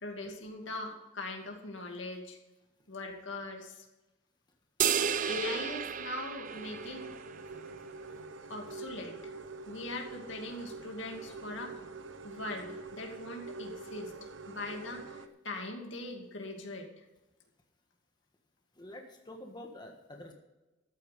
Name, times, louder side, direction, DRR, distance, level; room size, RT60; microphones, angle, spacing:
voice 1, 0.0-2.4 2.9-3.9 4.9-7.1 8.5-9.3 9.7-11.9 12.2-17.0, left 2 dB, 80° left, 2 dB, 2.5 m, -41 dB
sound 1, 4.8-7.4, right 8 dB, 45° right, 0.5 m, -32 dB
sound 2, 6.4-15.3, right 3 dB, 85° right, 0.9 m, -45 dB
voice 2, 18.8-20.3, left 1 dB, 25° left, 2 dB, 1.5 m, -47 dB
13.5 x 9.0 x 5.2 m, 1.0 s
head